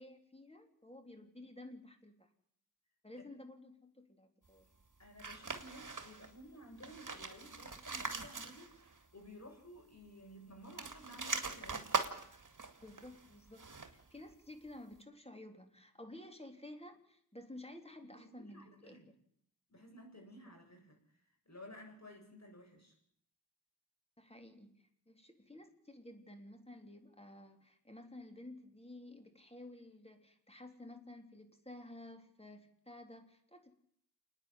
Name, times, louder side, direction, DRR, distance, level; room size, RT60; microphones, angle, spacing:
voice 1, 0.0-2.3 3.0-4.7 12.8-19.2 24.2-33.7, left 1 dB, 15° left, 5 dB, 3.6 m, -53 dB
voice 2, 5.0-11.9 18.1-19.1 19.7-21.2 21.4-23.0, equal, 40° left, 2 dB, 7.9 m, -55 dB
sound 1, 5.2-6.3 6.7-9.0 9.2-9.3 10.6-14.1, right 4 dB, 50° right, 2.4 m, -41 dB
28.5 x 9.9 x 9.4 m, 0.66 s
cardioid pair, 40°, 39 cm